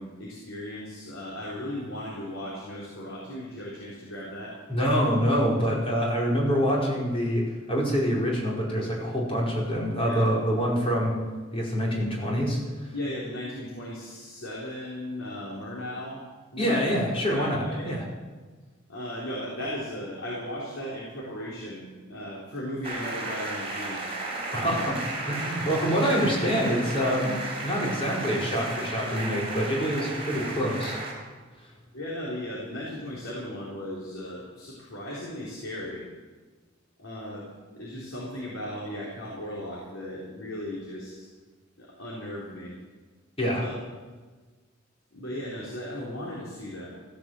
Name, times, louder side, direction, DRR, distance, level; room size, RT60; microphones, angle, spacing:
voice 1, 0.0-4.6 10.0-10.2 12.9-16.2 16.5-16.9 17.3-17.9 18.9-24.0 24.6-24.8 30.0-30.1 30.4-30.5 31.9-36.0 37.0-41.3 41.8-42.7 43.5-43.8 45.1-46.9, left 1 dB, 80° left, -5 dB, 3.9 m, -36 dB
voice 2, 4.7-11.2 11.5-12.6 16.6-18.0 24.5-25.0 25.3-31.0 43.4-43.6, equal, 30° left, -4 dB, 4.6 m, -26 dB
sound 1, 22.8-31.1, right 2 dB, 30° right, 4.2 m, -34 dB
15.0 x 11.0 x 7.7 m, 1.4 s
head